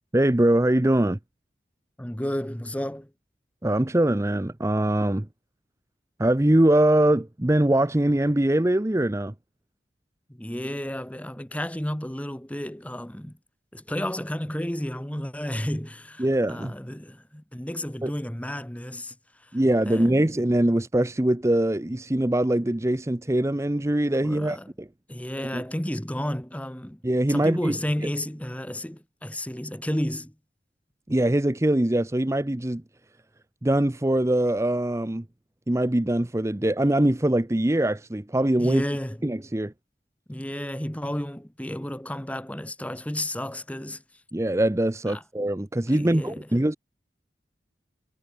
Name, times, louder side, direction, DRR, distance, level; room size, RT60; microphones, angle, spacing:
voice 1, 0.1-1.2 3.6-5.3 6.2-9.3 16.2-16.7 18.0-18.1 19.5-24.9 25.5-25.6 27.0-27.7 31.1-32.8 33.6-35.2 35.7-38.8 39.2-39.7 44.3-46.8, right 1 dB, 15° right, 0.7 m, -22 dB
voice 2, 2.0-3.1 10.3-13.4 13.7-19.1 19.9-20.3 24.2-24.7 25.1-27.0 27.3-30.3 38.6-39.2 40.3-44.0 45.1-45.2 45.9-46.5, left 1 dB, 10° left, 1.2 m, -32 dB
head